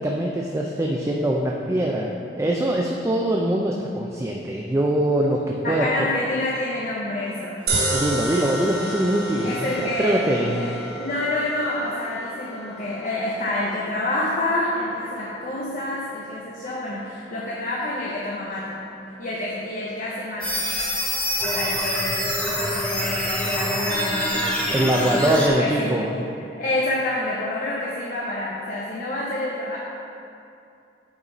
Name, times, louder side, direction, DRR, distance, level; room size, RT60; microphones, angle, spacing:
voice 1, 0.0-5.9 7.7-10.7 24.7-26.2, right 1 dB, 15° right, -1 dB, 0.4 m, -23 dB
voice 2, 5.6-7.8 9.4-18.8 19.2-20.6 21.4-24.5 24.8-25.9 26.6-29.8, left 2 dB, 45° left, -4 dB, 0.7 m, -28 dB
sound 1, 7.7-20.0, right 2 dB, 60° right, 1.1 m, -33 dB
sound 2, 20.4-25.5, equal, 5° left, 0.7 m, -25 dB
8.8 x 4.1 x 4.0 m, 2.6 s
head